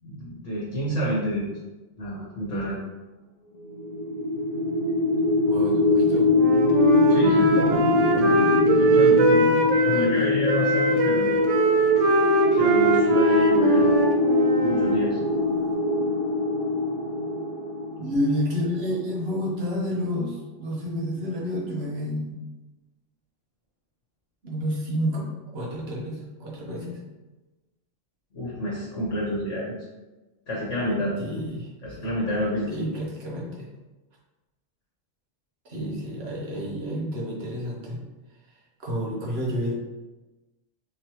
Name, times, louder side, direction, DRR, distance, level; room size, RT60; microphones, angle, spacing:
voice 1, 0.0-1.5 2.0-2.8 7.1-7.8 8.1-8.4 8.7-9.6 9.9-11.3 12.6-14.0 14.6-15.2 28.3-29.8 30.5-31.1 31.8-32.7 35.7-35.9, equal, 80° left, -6 dB, 1.4 m, -29 dB
sound 1, 3.7-18.8, left 3 dB, 30° left, 0.7 m, -22 dB
voice 2, 5.4-6.3 18.0-22.4 24.4-27.0 31.2-31.7 32.7-33.7 35.7-38.0 38.8-39.7, equal, 55° right, -3 dB, 1.2 m, -30 dB
Wind instrument woodwind instrument, 6.3-10.1 10.5-15.0, right 3 dB, 90° right, 1.0 m, -22 dB
3.9 x 3.2 x 3.0 m, 1.1 s
omnidirectional pair, 1.3 m